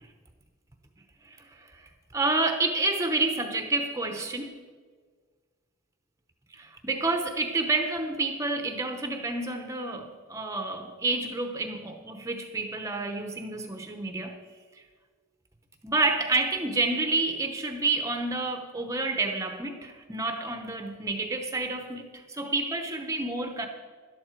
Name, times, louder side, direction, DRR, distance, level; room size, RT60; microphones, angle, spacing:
voice 1, 1.2-4.5 6.5-14.4 15.8-23.7, right 3 dB, 15° right, 5 dB, 0.8 m, -29 dB
12.5 x 11.5 x 4.6 m, 1.5 s
head